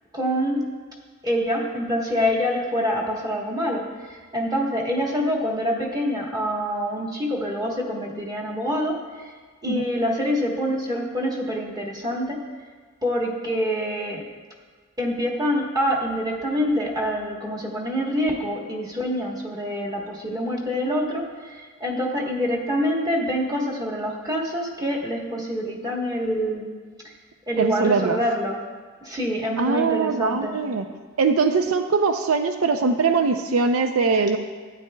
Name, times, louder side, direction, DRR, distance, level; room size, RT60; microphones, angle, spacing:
voice 1, 0.1-0.7 1.2-9.3 9.6-12.4 13.0-14.2 15.0-26.7 27.0-27.1 27.5-28.6 29.0-30.6, equal, 20° right, -1 dB, 1.2 m, -26 dB
voice 2, 27.6-28.2 29.6-30.9 31.2-34.4, right 4 dB, 80° right, 7 dB, 0.5 m, -21 dB
12.0 x 9.4 x 2.3 m, 1.5 s
head